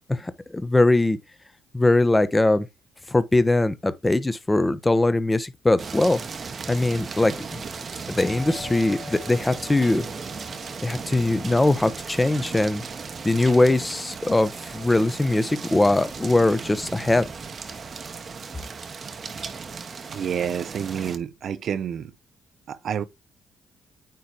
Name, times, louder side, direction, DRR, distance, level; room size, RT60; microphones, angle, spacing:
voice 1, 0.1-1.2 1.7-2.7 3.1-6.2 6.7-7.6 8.2-10.1 10.8-12.8 13.2-17.2, left 2 dB, 15° left, 0.9 m, -21 dB
sound 1, 5.8-21.2, right 5 dB, 45° right, 1.1 m, -36 dB
Doorbell, 8.2-12.8, left 5 dB, 40° left, 1.1 m, -44 dB
voice 2, 20.1-22.1 22.7-23.0, right 8 dB, 60° right, 0.7 m, -28 dB
9.3 x 3.3 x 4.3 m
cardioid pair, 90°, 0 cm